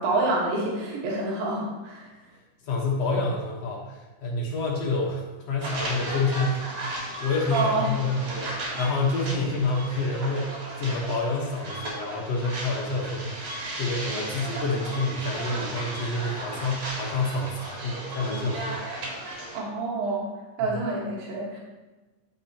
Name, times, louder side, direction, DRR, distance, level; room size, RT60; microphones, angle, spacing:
voice 1, 0.0-2.1 7.5-7.9 19.5-20.3 20.6-21.6, right 2 dB, 90° right, -3 dB, 3.4 m, -27 dB
voice 2, 2.6-6.6 6.9-18.9 20.7-20.8, left 2 dB, 60° left, -2 dB, 1.9 m, -28 dB
sound 1, 5.6-19.6, right 1 dB, 70° right, 3.4 m, -35 dB
12.5 x 6.1 x 2.9 m, 1.2 s
omnidirectional pair, 3.9 m